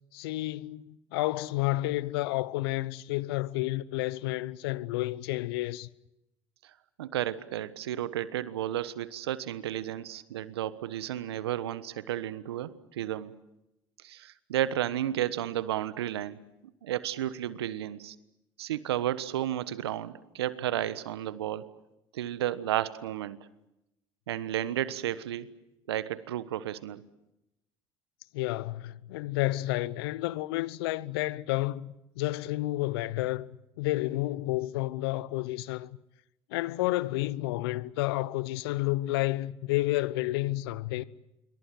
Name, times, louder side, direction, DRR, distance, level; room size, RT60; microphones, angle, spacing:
voice 1, 0.1-5.9 28.3-33.5 33.8-36.0 36.5-41.0, left 18 dB, 75° left, 0.9 m, -30 dB
voice 2, 7.0-13.4 14.0-16.4 16.8-18.1 18.6-21.7 22.1-23.4 24.3-25.5 25.9-27.0, right 12 dB, 85° right, 1.3 m, -32 dB
27.0 x 24.0 x 7.7 m
hypercardioid pair, 65°, 13 cm